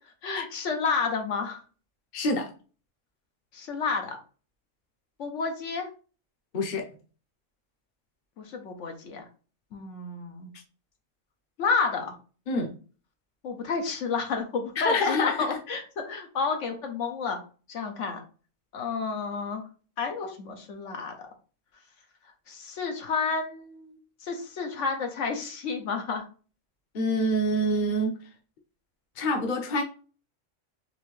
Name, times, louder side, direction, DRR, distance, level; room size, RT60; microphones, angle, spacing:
voice 1, 0.2-1.6 3.5-4.2 5.2-5.9 8.4-9.3 9.7-10.5 11.6-12.1 13.4-17.4 17.7-18.2 18.7-19.6 20.0-21.2 22.5-26.2, left 5 dB, 75° left, 4 dB, 1.1 m, -30 dB
voice 2, 2.1-2.5 6.5-6.9 12.5-12.7 14.8-15.5 26.9-28.1 29.2-29.8, left 1 dB, 45° left, 3 dB, 0.8 m, -26 dB
4.3 x 3.2 x 3.2 m, 0.37 s
omnidirectional pair, 1.3 m